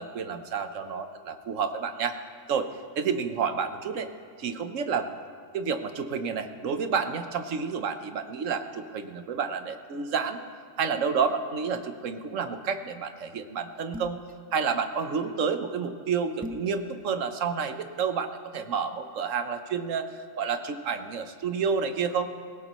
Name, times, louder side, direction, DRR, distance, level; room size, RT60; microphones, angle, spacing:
voice 1, 0.0-2.2 2.5-2.7 3.0-4.1 4.4-5.1 5.5-10.4 10.8-14.2 14.5-22.3, right 6 dB, 85° right, 8 dB, 1.3 m, -30 dB
sound 1, 13.9-14.3 16.4-16.7, left 1 dB, 10° right, 0.4 m, -39 dB
20.5 x 17.5 x 3.1 m, 2.1 s
omnidirectional pair, 1.3 m